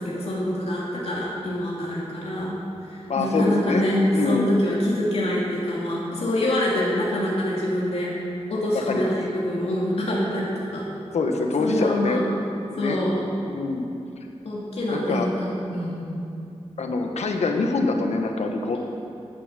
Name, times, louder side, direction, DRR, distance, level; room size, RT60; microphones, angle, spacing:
voice 1, 0.0-2.6 2.9-8.1 8.5-10.9 11.6-12.2 12.8-13.2 14.4-16.0, left 1 dB, 70° left, -5 dB, 2.6 m, -25 dB
voice 2, 3.1-3.8 4.1-4.5 8.7-9.1 11.1-12.2 12.7-13.0 13.4-13.9 14.9-15.3 16.8-18.8, left 3 dB, 90° left, 3 dB, 1.2 m, -25 dB
13.0 x 10.0 x 6.7 m, 2.6 s
wide cardioid pair, 110°, 11 cm